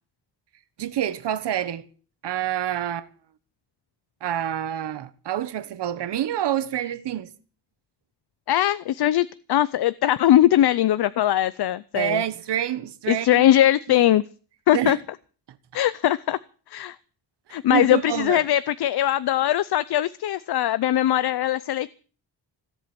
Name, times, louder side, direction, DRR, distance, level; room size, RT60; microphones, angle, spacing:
voice 1, 0.8-1.9 2.2-3.1 4.2-7.3 11.9-13.5 13.9-14.1 14.7-15.0 17.5-18.4, right 11 dB, 75° right, 1.3 m, -27 dB
voice 2, 8.5-12.2 13.1-14.2 14.7-15.0 15.7-16.4 16.7-17.0 17.5-21.9, left 12 dB, 65° left, 0.6 m, -21 dB
16.5 x 8.1 x 9.0 m
wide cardioid pair, 165°, 42 cm